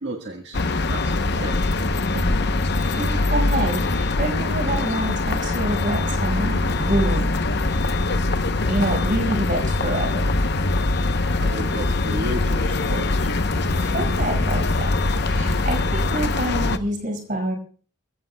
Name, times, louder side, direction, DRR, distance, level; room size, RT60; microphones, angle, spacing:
voice 1, 0.0-0.6 0.9-1.7 11.4-13.3, right 1 dB, 60° right, 3 dB, 1.6 m, -33 dB
sound 1, 0.5-16.8, left 3 dB, 55° left, 0.8 m, -23 dB
sound 2, 0.8-17.0, right 1 dB, 90° right, 7.5 m, -34 dB
voice 2, 2.7-7.3 8.7-10.2 13.7-17.5, right 1 dB, 40° right, 2 dB, 5.4 m, -27 dB
28.0 x 15.5 x 2.3 m, 0.42 s
head